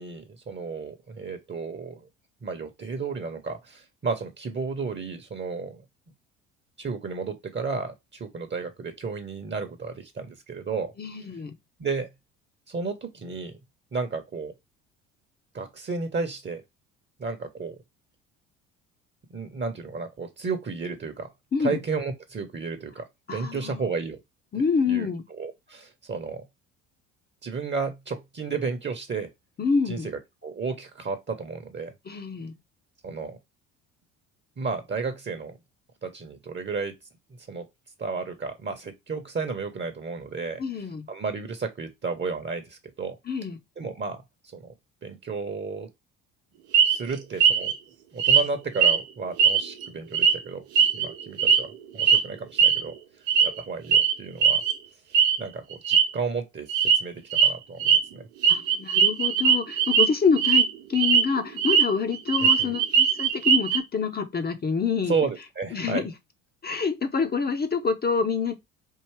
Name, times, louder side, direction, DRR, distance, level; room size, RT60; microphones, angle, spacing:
voice 1, 0.0-2.1 2.4-5.8 6.8-10.9 11.8-12.1 12.7-13.6 13.9-14.5 15.5-16.6 17.2-17.8 19.3-21.3 21.6-24.2 24.9-26.4 27.4-29.3 29.9-31.9 33.0-33.4 34.6-35.6 36.0-36.9 37.5-37.6 38.0-40.6 41.1-43.2 43.8-44.2 44.5-44.7 45.0-45.9 46.9-47.7 48.1-50.6 50.9-52.9 53.4-54.6 55.4-58.3 62.4-62.7 65.1-66.0, right 4 dB, 30° right, 1.0 m, -32 dB
voice 2, 11.0-11.6 21.5-21.8 23.3-23.8 24.5-25.2 29.6-30.1 32.1-32.6 40.6-41.1 43.3-43.6 58.5-65.1 65.7-66.1 66.6-68.5, left 5 dB, 25° left, 0.7 m, -26 dB
sound 1, 46.7-47.0 47.4-47.7 48.2-48.5 48.8-49.0 49.4-49.9 50.1-50.3 50.8-51.6 52.0-52.2 52.6-52.8 53.3-53.6 53.9-54.1 54.4-54.7 55.1-55.4 55.7-56.0 56.7-57.0 57.3-57.5 57.8-58.0 58.4-60.1 60.4-60.6 60.9-61.8 62.1-63.8, right 7 dB, 70° right, 0.9 m, -19 dB
4.6 x 2.8 x 3.1 m
hypercardioid pair, 55°, 39 cm